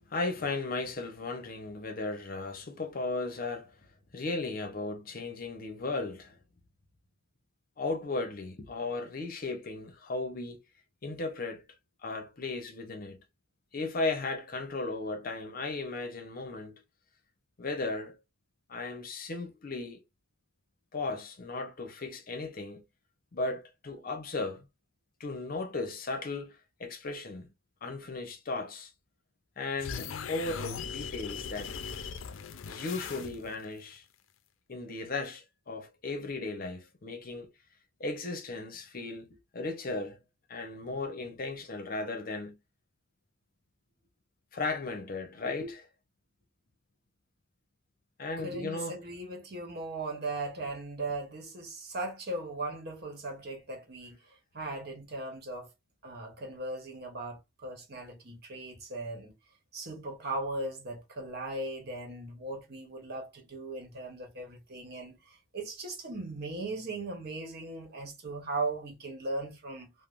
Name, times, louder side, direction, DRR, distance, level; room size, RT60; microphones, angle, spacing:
voice 1, 0.1-3.8 4.1-6.4 7.8-10.6 11.0-11.6 12.0-13.2 13.7-16.8 17.6-18.2 18.7-20.0 20.9-22.8 23.3-24.7 25.2-27.5 27.8-28.9 29.6-31.7 32.7-34.0 34.7-37.5 38.0-39.3 39.5-40.2 40.5-42.6 44.5-45.9 48.2-49.0, left 3 dB, 45° left, 0.7 m, -36 dB
sound 1, 29.8-33.6, left 6 dB, 85° left, 0.4 m, -39 dB
voice 2, 48.4-55.7 56.0-59.3 59.7-69.9, right 2 dB, 55° right, 1.0 m, -38 dB
3.3 x 2.0 x 2.4 m
head